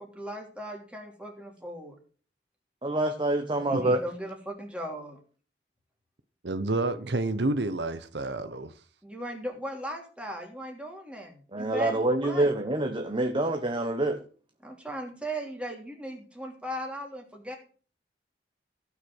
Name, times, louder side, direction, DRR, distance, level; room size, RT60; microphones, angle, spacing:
voice 1, 0.0-1.9 3.5-5.2 9.0-12.5 14.6-17.6, equal, 5° right, 3.1 m, -38 dB
voice 2, 2.8-4.0 11.5-14.2, right 1 dB, 30° right, 1.2 m, -26 dB
voice 3, 6.4-8.7, right 2 dB, 70° right, 1.0 m, -29 dB
16.0 x 6.0 x 6.3 m
head